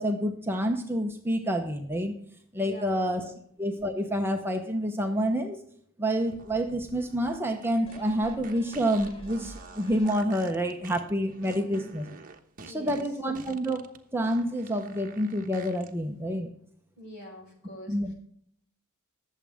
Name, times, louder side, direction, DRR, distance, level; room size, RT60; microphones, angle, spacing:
voice 1, 0.0-2.1 2.5-3.3 3.6-5.6 6.0-12.1 12.7-16.5 17.9-18.1, equal, 10° right, 3 dB, 0.9 m, -28 dB
voice 2, 2.5-3.3 11.4-11.9 12.6-13.0 17.0-18.0, equal, 50° left, 2 dB, 4.6 m, -45 dB
sound 1, 6.3-15.9, right 4 dB, 40° right, 1.1 m, -49 dB
sound 2, 7.8-10.5 11.0-11.1, right 1 dB, 25° left, 2.2 m, -48 dB
21.0 x 7.4 x 3.5 m, 0.66 s
head